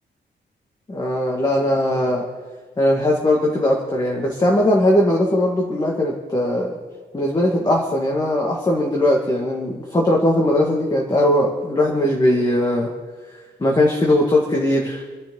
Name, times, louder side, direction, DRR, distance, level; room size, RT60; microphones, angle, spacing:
voice 1, 0.9-2.3 2.8-6.8 7.1-12.9 13.6-15.1, left 1 dB, 20° left, -1 dB, 2.0 m, -19 dB
28.5 x 11.5 x 3.9 m, 1.4 s
wide cardioid pair, 160°, 20 cm